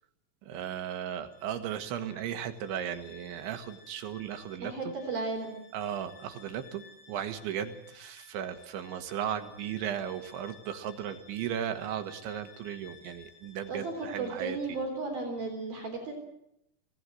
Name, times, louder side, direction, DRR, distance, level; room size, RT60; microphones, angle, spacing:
voice 1, 0.4-4.7 5.7-14.6, right 9 dB, 75° right, 8 dB, 3.7 m, -36 dB
Bowed string instrument, 1.2-15.1, left 6 dB, 60° left, 8.1 m, -56 dB
voice 2, 4.6-5.5 13.7-16.1, right 3 dB, 50° right, 2 dB, 5.1 m, -34 dB
25.5 x 18.0 x 7.8 m, 0.79 s
omnidirectional pair, 5.7 m